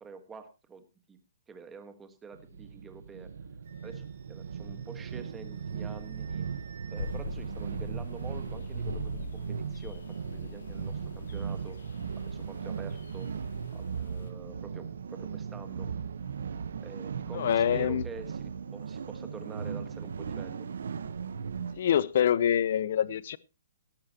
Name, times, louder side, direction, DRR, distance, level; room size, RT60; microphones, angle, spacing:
voice 1, 0.0-1.2 1.5-3.3 3.8-6.5 6.9-11.8 12.2-13.3 13.7-15.9 16.5-20.7, right 5 dB, 10° right, 1.4 m, -47 dB
sound 1, 2.3-21.8, right 6 dB, 75° right, 1.0 m, -37 dB
Wind instrument woodwind instrument, 3.7-7.2, right 7 dB, 50° right, 3.6 m, -57 dB
sound 2, 7.0-14.3, left 6 dB, 75° left, 1.9 m, -45 dB
voice 2, 17.3-18.0 21.8-23.4, left 9 dB, 45° left, 0.7 m, -25 dB
18.0 x 12.0 x 2.9 m
hypercardioid pair, 175°, 0 cm